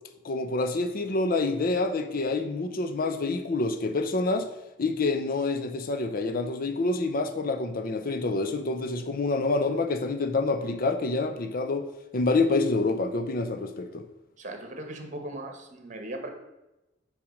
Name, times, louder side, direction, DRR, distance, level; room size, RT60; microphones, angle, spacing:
voice 1, 0.2-4.5 4.8-11.9 12.1-14.1, left 3 dB, 50° left, 8 dB, 0.6 m, -27 dB
voice 2, 14.4-16.3, right 1 dB, 40° right, 5 dB, 1.3 m, -38 dB
5.9 x 5.0 x 6.4 m, 0.98 s
head